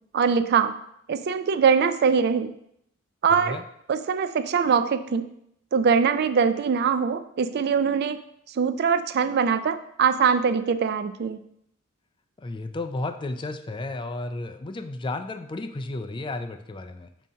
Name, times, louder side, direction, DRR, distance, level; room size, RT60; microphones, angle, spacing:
voice 1, 0.1-0.7 1.1-2.5 3.2-3.6 3.9-5.3 5.7-8.2 8.6-11.4, right 6 dB, 50° right, 11 dB, 0.3 m, -22 dB
voice 2, 3.3-3.6 12.4-17.1, left 2 dB, 25° left, 8 dB, 0.3 m, -33 dB
7.3 x 2.8 x 5.2 m, 0.74 s
head